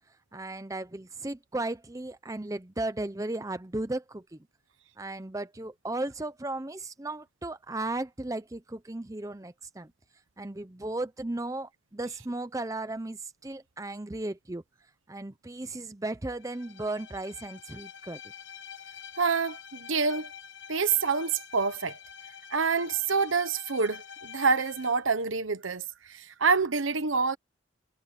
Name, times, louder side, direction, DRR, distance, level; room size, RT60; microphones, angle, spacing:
voice 1, 0.3-4.4 5.0-9.9 10.4-14.6 15.1-18.2, right 2 dB, 15° right, 0.6 m, -35 dB
Bowed string instrument, 16.4-25.0, left 8 dB, 65° left, 1.3 m, -47 dB
voice 2, 19.2-20.3 20.7-22.0 22.5-27.4, right 5 dB, 80° right, 1.1 m, -27 dB
head